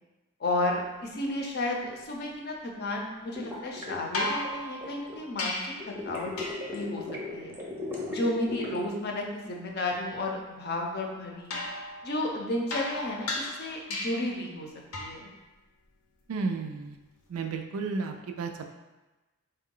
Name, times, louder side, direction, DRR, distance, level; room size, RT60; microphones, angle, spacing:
voice 1, 0.4-5.6 5.9-6.3 6.7-7.0 7.3-7.6 8.1-11.6 12.0-14.7 15.0-15.3, left 1 dB, 50° left, 0 dB, 0.5 m, -32 dB
sound 1, 3.3-5.2 5.8-8.9, left 2 dB, 10° right, 0.6 m, -37 dB
sound 2, 4.1-5.9 6.4-6.8 11.5-14.4 14.9-15.3 17.3-17.4, left 2 dB, 90° left, 0.7 m, -35 dB
voice 2, 16.3-17.0 17.3-18.6, right 4 dB, 75° right, 5 dB, 0.4 m, -32 dB
3.8 x 2.2 x 3.7 m, 1.1 s
head